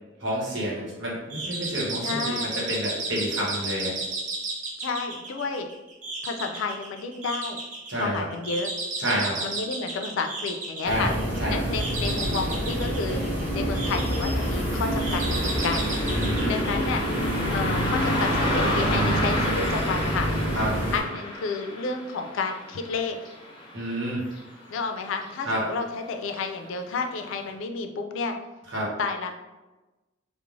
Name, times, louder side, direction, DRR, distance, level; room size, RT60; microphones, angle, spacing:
voice 1, 0.2-3.9 7.9-8.3 9.0-9.4 10.8-11.6 16.1-16.5 20.5-20.7 23.7-24.2 25.4-25.6 28.7-28.9, equal, 65° right, -5 dB, 0.9 m, -29 dB
sound 1, 1.3-17.4, right 2 dB, 40° right, 0.5 m, -34 dB
voice 2, 2.0-2.5 4.8-5.7 6.2-7.6 8.0-8.7 9.4-11.1 11.5-13.2 13.5-15.9 16.4-17.0 17.5-20.3 20.9-23.2 24.7-28.4 29.0-29.3, left 4 dB, 85° left, 5 dB, 0.3 m, -31 dB
sound 2, 10.8-21.0, equal, 10° right, 1.0 m, -27 dB
Car passing by, 14.1-24.9 25.2-25.3 26.2-26.4 26.9-27.0 27.5-27.6, left 1 dB, 25° left, 0.6 m, -32 dB
3.1 x 2.0 x 2.4 m, 1.1 s
head